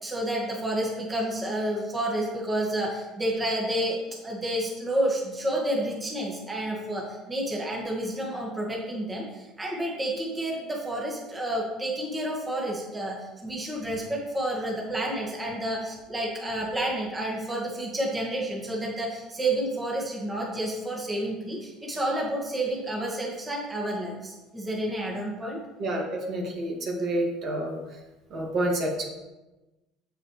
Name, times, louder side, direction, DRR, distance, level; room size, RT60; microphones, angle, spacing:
voice 1, 0.0-25.6, right 1 dB, 15° right, -3 dB, 1.8 m, -30 dB
voice 2, 25.8-27.8 28.3-29.0, right 1 dB, 50° right, -1 dB, 1.9 m, -28 dB
7.5 x 7.2 x 3.3 m, 1.1 s
supercardioid pair, 105°, 0 cm